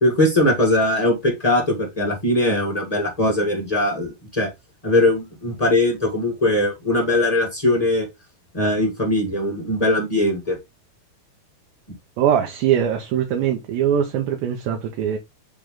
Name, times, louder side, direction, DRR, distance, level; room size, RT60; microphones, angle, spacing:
voice 1, 0.0-4.5 4.8-8.1 8.5-10.6, left 1 dB, 45° left, 0.4 m, -20 dB
voice 2, 12.2-15.2, right 9 dB, 75° right, 2.7 m, -21 dB
8.7 x 3.3 x 3.7 m
omnidirectional pair, 4.4 m